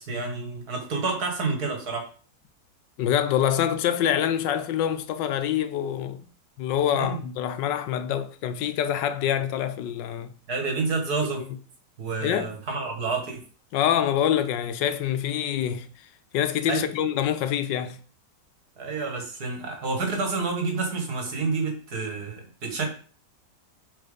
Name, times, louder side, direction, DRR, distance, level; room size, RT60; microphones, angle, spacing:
voice 1, 0.0-2.1 6.9-7.2 10.5-11.4 12.0-13.4 16.7-16.8 18.8-22.9, right 4 dB, 60° right, 2.3 m, -29 dB
voice 2, 3.0-6.2 6.6-10.3 12.2-12.5 13.7-15.9 16.3-18.0, left 10 dB, 80° left, 1.4 m, -25 dB
8.0 x 4.3 x 5.1 m
omnidirectional pair, 1.9 m